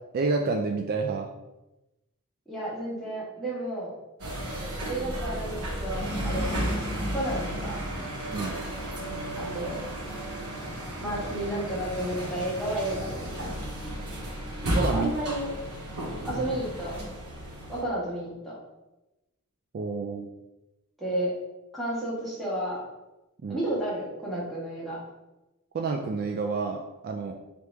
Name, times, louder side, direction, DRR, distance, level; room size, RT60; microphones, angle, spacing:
voice 1, 0.1-1.3 8.3-8.6 14.7-15.1 19.7-20.3 23.4-23.6 25.7-27.3, right 4 dB, 45° right, 3 dB, 0.3 m, -29 dB
voice 2, 2.5-3.9 4.8-6.5 7.1-7.8 9.4-9.8 11.0-13.5 14.9-15.5 16.3-17.0 17.7-18.6 21.0-21.3 21.7-22.8 23.5-25.0, right 1 dB, ahead, -8 dB, 1.4 m, -32 dB
sound 1, 4.2-17.8, right 1 dB, 75° right, 1.0 m, -33 dB
3.4 x 2.9 x 4.5 m, 1.0 s
head